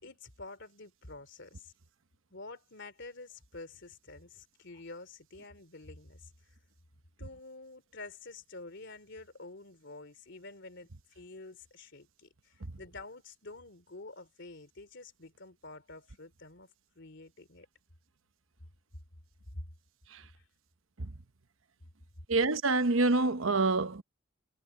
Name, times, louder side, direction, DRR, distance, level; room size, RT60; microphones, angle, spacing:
voice 1, 0.0-1.7 2.3-6.3 7.2-10.9 11.1-16.7 16.9-17.7 19.5-19.6 20.4-20.5, left 2 dB, 65° left, 3.1 m, -48 dB
voice 2, 22.3-24.0, right 3 dB, 85° right, 1.0 m, -26 dB
head